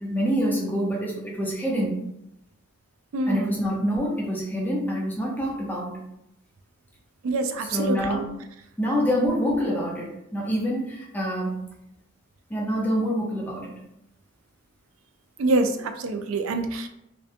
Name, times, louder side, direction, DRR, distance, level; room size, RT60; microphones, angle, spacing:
voice 1, 0.0-2.0 3.3-6.0 7.7-8.3 8.8-11.6 12.5-13.8, equal, 10° left, -2 dB, 0.4 m, -26 dB
voice 2, 3.1-3.5 7.2-8.2 15.4-16.9, right 2 dB, 85° right, 7 dB, 0.3 m, -25 dB
2.7 x 2.2 x 2.4 m, 0.82 s
head